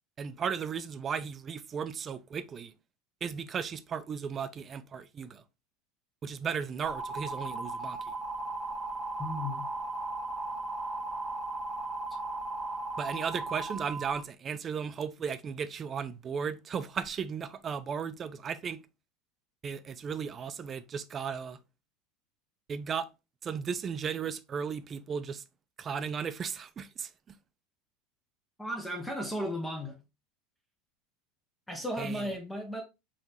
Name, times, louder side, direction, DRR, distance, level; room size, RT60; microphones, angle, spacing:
voice 1, 0.2-2.7 3.2-5.4 6.2-8.1 13.0-18.8 19.6-21.6 22.7-23.1 23.4-25.4 25.8-27.1 32.0-32.2, right 6 dB, 35° right, 0.5 m, -35 dB
sound 1, 6.9-14.2, right 2 dB, 15° right, 1.1 m, -36 dB
voice 2, 9.2-9.7 28.6-30.0 31.7-32.8, equal, 5° left, 1.0 m, -35 dB
5.0 x 2.8 x 3.3 m
hypercardioid pair, 80°, 0 cm